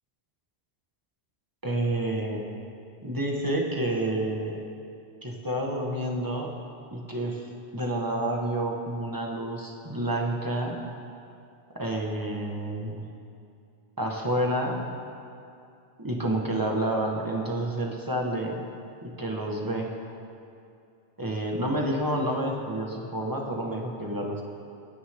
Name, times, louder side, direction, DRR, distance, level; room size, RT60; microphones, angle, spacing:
voice 1, 1.6-2.4 3.0-4.6 5.2-6.5 6.9-10.8 11.8-13.0 14.0-14.8 16.0-18.6 19.0-19.9 21.2-24.4, right 1 dB, 20° right, -1 dB, 1.9 m, -29 dB
27.0 x 10.0 x 3.9 m, 2.6 s
omnidirectional pair, 1.1 m